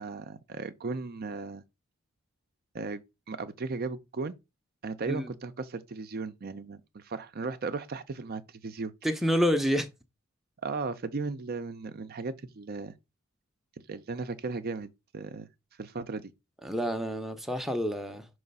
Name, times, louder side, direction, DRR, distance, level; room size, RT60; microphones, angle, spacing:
voice 1, 0.0-1.6 2.7-3.0 3.3-4.4 4.8-8.9 10.6-12.9 13.9-15.5 15.8-16.3, right 4 dB, 45° right, 0.5 m, -36 dB
voice 2, 9.0-9.9 16.6-18.3, equal, ahead, 0.6 m, -28 dB
5.8 x 3.1 x 5.3 m
head